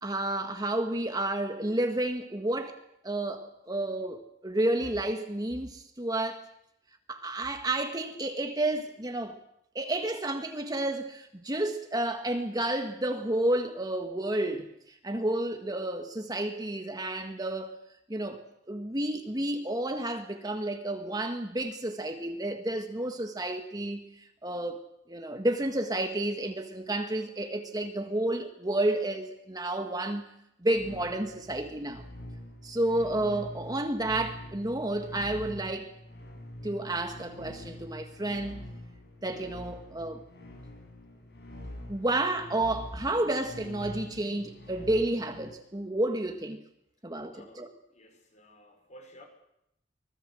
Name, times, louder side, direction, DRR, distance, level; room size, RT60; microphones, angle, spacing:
voice 1, 0.0-2.8 3.0-6.4 7.1-9.4 9.7-17.8 18.1-30.3 30.6-32.0 32.6-35.9 36.6-38.6 39.2-40.2 41.9-46.6 47.0-47.7, right 1 dB, 20° right, 6 dB, 1.7 m, -31 dB
sound 1, 30.7-45.5, left 1 dB, 60° left, 7.6 m, -45 dB
voice 2, 47.3-49.2, equal, 40° left, 4 dB, 5.7 m, -54 dB
25.0 x 19.5 x 7.8 m, 0.79 s
head